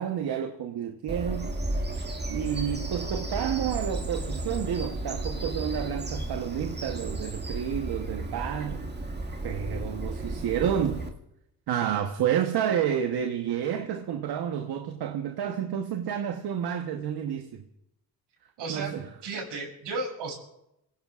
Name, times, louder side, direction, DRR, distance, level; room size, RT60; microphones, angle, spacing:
voice 1, 0.0-1.6 2.3-8.9 9.4-11.0 11.7-17.6 18.7-19.1, right 9 dB, 65° right, 1.1 m, -30 dB
Bird vocalization bird call bird song, 1.1-11.1, right 2 dB, 25° right, 2.0 m, -33 dB
voice 2, 18.6-20.3, right 3 dB, 80° right, 6.7 m, -34 dB
27.0 x 16.5 x 2.5 m
supercardioid pair, 70°, 42 cm